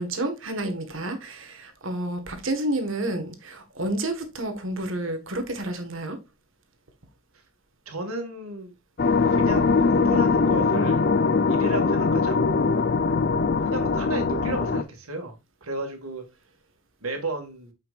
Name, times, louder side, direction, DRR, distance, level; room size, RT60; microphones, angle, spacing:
voice 1, 0.0-6.2, right 1 dB, 65° right, 1.6 m, -30 dB
voice 2, 7.9-8.7 9.2-11.1 11.5-12.7 13.6-15.4 15.6-16.2 17.0-17.7, right 2 dB, 85° right, 2.1 m, -33 dB
sound 1, 9.0-14.8, left 4 dB, 45° left, 0.5 m, -21 dB
8.6 x 5.7 x 2.5 m
head